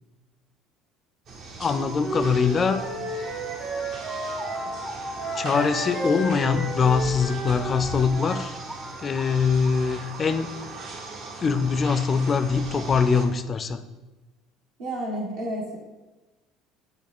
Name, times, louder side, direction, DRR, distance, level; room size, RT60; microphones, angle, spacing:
sound 1, 1.3-13.3, right 3 dB, 55° right, 0.8 m, -40 dB
voice 1, 1.6-2.8 4.7-4.8 5.4-8.6 9.0-10.5 11.4-13.8, left 5 dB, 35° left, 11 dB, 0.3 m, -23 dB
Wind instrument woodwind instrument, 1.6-4.7 5.1-8.4, right 1 dB, 35° right, 1.3 m, -33 dB
sound 2, 2.5-13.4, right 1 dB, 20° right, 0.5 m, -40 dB
voice 2, 14.8-15.8, right 1 dB, 70° right, -3 dB, 1.3 m, -30 dB
6.5 x 2.3 x 3.5 m, 1.1 s
hypercardioid pair, 65°, 0 cm